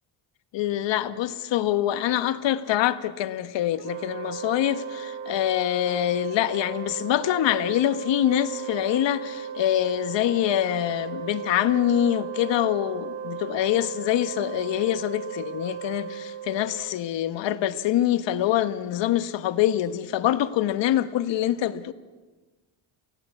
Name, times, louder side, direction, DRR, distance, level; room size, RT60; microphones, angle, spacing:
voice 1, 0.5-21.9, left 12 dB, 60° left, 1.3 m, -25 dB
Wind instrument woodwind instrument, 3.8-17.2, right 8 dB, 70° right, 1.3 m, -36 dB
28.5 x 16.5 x 8.3 m
cardioid pair, 135°, 49 cm